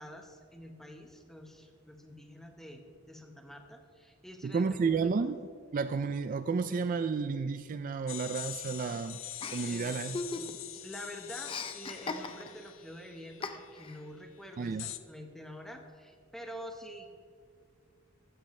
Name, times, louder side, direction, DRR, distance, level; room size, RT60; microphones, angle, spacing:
voice 1, 0.0-5.1 9.6-10.0 10.3-17.1, equal, ahead, 4 dB, 1.1 m, -47 dB
voice 2, 4.4-5.4 5.7-9.2 9.5-10.2 14.6-14.9, right 5 dB, 45° right, 11 dB, 0.3 m, -31 dB
sound 1, 8.1-13.8 14.8-15.0, left 13 dB, 90° left, 0.6 m, -44 dB
Chuckle chortle, 9.4-10.8 11.0-12.7 13.4-14.0, left 3 dB, 25° left, 0.6 m, -39 dB
15.0 x 13.0 x 3.2 m, 2.1 s
head